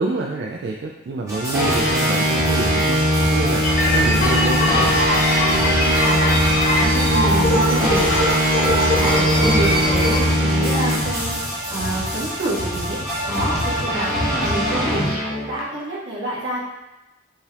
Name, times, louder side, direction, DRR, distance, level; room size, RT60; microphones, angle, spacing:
voice 1, 0.0-5.1 9.0-10.2, right 3 dB, 60° right, 0 dB, 0.3 m, -27 dB
sound 1, 1.3-15.6, equal, 15° right, 1.2 m, -21 dB
sound 2, 3.6-10.2, left 1 dB, 50° left, 0.8 m, -21 dB
voice 2, 5.5-6.2 6.8-8.4 8.8-11.4 11.7-13.0 13.3-16.6, right 2 dB, 85° right, -6 dB, 1.5 m, -28 dB
5.3 x 3.4 x 2.4 m, 1.0 s
head